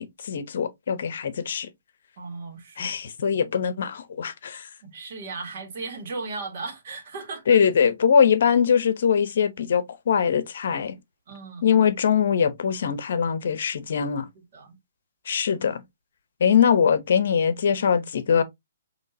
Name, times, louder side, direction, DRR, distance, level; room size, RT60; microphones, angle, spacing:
voice 1, 0.0-1.7 2.8-4.7 7.5-11.0 11.6-14.3 15.3-15.8 16.4-18.4, left 7 dB, 60° left, 0.7 m, -22 dB
voice 2, 2.2-2.9 4.8-7.6 11.3-11.6 14.3-14.8 16.5-16.6, right 3 dB, 50° right, 1.7 m, -36 dB
5.5 x 2.9 x 2.7 m
hypercardioid pair, 145°, 0 cm